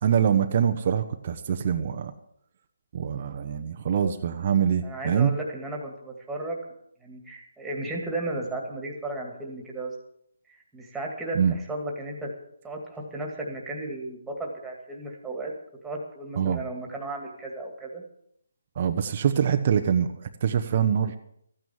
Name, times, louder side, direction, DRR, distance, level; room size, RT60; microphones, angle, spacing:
voice 1, 0.0-2.1 2.9-5.3 11.3-11.6 16.4-16.6 18.8-20.1 20.4-21.2, right 8 dB, 40° right, 7 dB, 0.9 m, -24 dB
voice 2, 4.8-6.6 7.0-9.9 10.7-12.3 12.6-15.5 15.8-18.0, right 2 dB, 5° right, -1 dB, 2.3 m, -34 dB
14.0 x 9.3 x 7.4 m, 0.71 s
hypercardioid pair, 165°, 0 cm